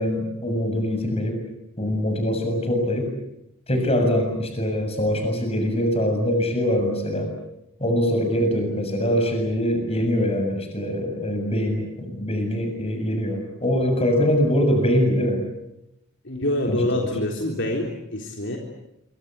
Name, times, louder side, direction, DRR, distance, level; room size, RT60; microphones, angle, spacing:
voice 1, 0.0-1.4 1.8-3.1 3.7-7.3 7.8-15.4 16.7-17.1, equal, 30° left, 5 dB, 7.3 m, -23 dB
voice 2, 16.2-18.6, left 1 dB, 55° left, 1 dB, 3.8 m, -26 dB
27.0 x 25.0 x 8.2 m, 0.82 s
head